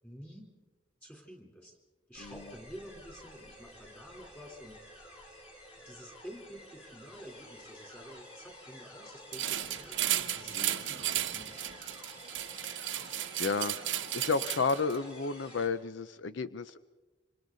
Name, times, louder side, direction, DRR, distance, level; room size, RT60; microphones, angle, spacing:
voice 1, 0.0-0.5 1.0-1.8 2.1-5.2 5.8-10.0 10.3-11.6, equal, 10° left, 1 dB, 3.7 m, -50 dB
sound 1, 2.1-15.7, left 1 dB, 35° left, 4.9 m, -51 dB
sound 2, 9.3-15.0, right 12 dB, 90° right, 0.9 m, -34 dB
voice 2, 13.4-13.8 14.1-16.9, left 4 dB, 80° left, 13 dB, 0.6 m, -32 dB
27.0 x 26.0 x 4.0 m, 1.2 s
head